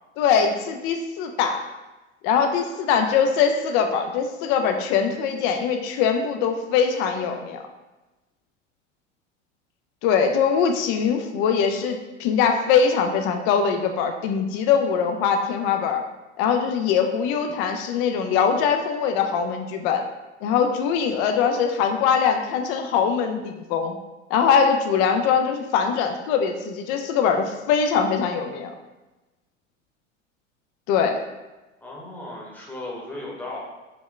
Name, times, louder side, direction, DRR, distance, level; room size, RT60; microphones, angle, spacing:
voice 1, 0.2-1.6 2.2-7.6 10.0-16.0 16.4-20.1 20.4-24.0 24.3-28.7 30.9-31.2, left 6 dB, 30° left, 5 dB, 0.4 m, -22 dB
voice 2, 31.8-33.6, left 2 dB, 5° left, -4 dB, 0.9 m, -36 dB
4.0 x 2.9 x 3.1 m, 1.1 s
figure-of-eight pair, 80°, 38 cm